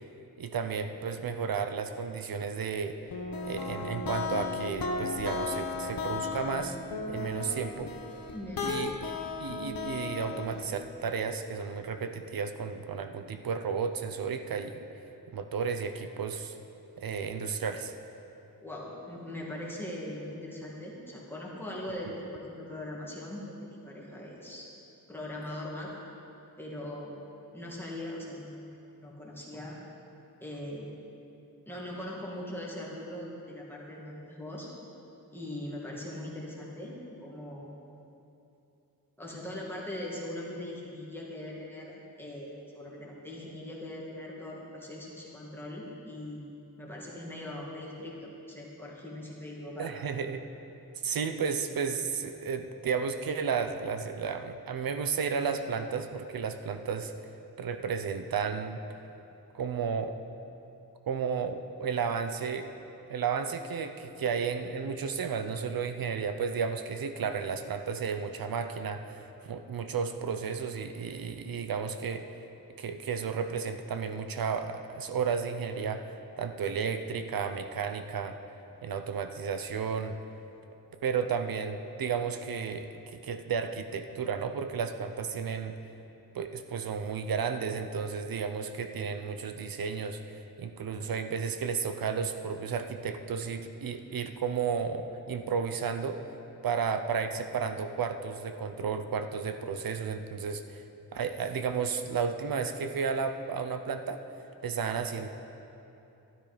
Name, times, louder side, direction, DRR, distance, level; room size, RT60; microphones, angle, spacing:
voice 1, 0.4-3.0 3.4-6.8 7.1-7.9 8.6-9.1 9.4-14.8 15.3-16.6 17.0-17.9 49.8-50.4 51.0-57.1 57.6-58.8 59.5-60.1 61.1-62.7 63.1-72.2 72.8-76.1 76.4-78.4 78.8-80.2 81.0-82.9 83.2-85.7 86.3-96.2 96.6-100.8 101.1-104.2 104.6-105.3, right 6 dB, 70° right, 8 dB, 0.7 m, -33 dB
sound 1, 3.1-10.7, left 4 dB, 70° left, 1.1 m, -35 dB
voice 2, 8.3-8.7 18.6-23.5 23.8-24.7 25.1-26.0 26.6-27.2 27.5-28.7 29.0-29.8 30.4-31.0 31.7-34.7 35.3-37.7 39.2-46.5 46.8-49.9, left 1 dB, 5° left, -5 dB, 2.0 m, -40 dB
12.5 x 12.5 x 5.1 m, 2.8 s
wide cardioid pair, 170°, 36 cm